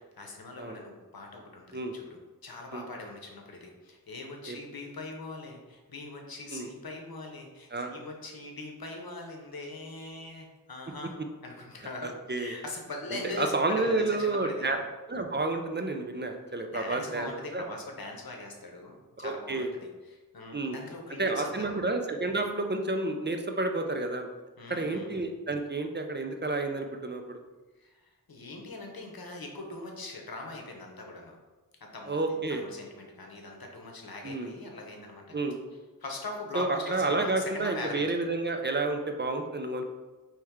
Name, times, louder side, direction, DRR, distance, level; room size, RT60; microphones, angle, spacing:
voice 1, 0.2-11.1 11.4-14.8 16.7-21.8 24.6-25.1 27.8-28.0 28.3-31.4 31.8-35.4 36.0-38.2, left 2 dB, 90° left, 1 dB, 0.8 m, -41 dB
voice 2, 12.0-12.6 13.4-14.8 15.1-17.6 19.2-19.7 20.5-20.8 21.2-24.3 24.7-27.4 32.1-32.6 34.2-34.5 35.3-35.6 36.5-39.8, right 2 dB, 30° right, 4 dB, 0.4 m, -30 dB
4.4 x 3.2 x 3.5 m, 1.2 s
wide cardioid pair, 50°, 35 cm